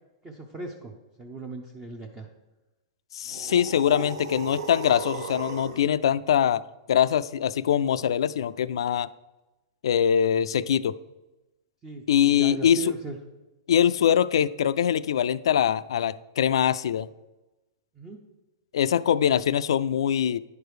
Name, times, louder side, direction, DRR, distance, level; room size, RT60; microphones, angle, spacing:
voice 1, 0.2-2.3 11.8-13.2 17.9-18.3, right 2 dB, 15° right, 2 dB, 0.5 m, -38 dB
voice 2, 3.1-9.1 9.8-10.9 12.1-12.8 13.7-17.1 18.7-20.4, left 9 dB, 80° left, 16 dB, 0.3 m, -23 dB
sound 1, 3.3-5.9, right 4 dB, 75° right, 1.0 m, -36 dB
10.0 x 4.7 x 4.9 m, 1.1 s
supercardioid pair, 170°, 3 cm